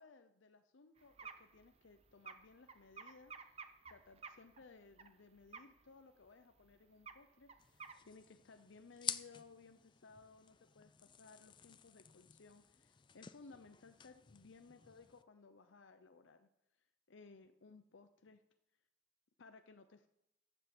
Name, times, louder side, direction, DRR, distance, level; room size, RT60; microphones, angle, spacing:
voice 1, 0.0-16.5 16.8-18.4 19.4-20.1, left 4 dB, 85° left, 8 dB, 0.7 m, -61 dB
sound 1, 1.0-5.1 5.4-5.9 6.3-6.4 6.6-6.7 7.0-7.9, right 5 dB, 30° right, 0.8 m, -53 dB
sound 2, 7.6-15.2, left 9 dB, 25° left, 0.4 m, -50 dB
14.5 x 8.1 x 6.0 m, 0.86 s
head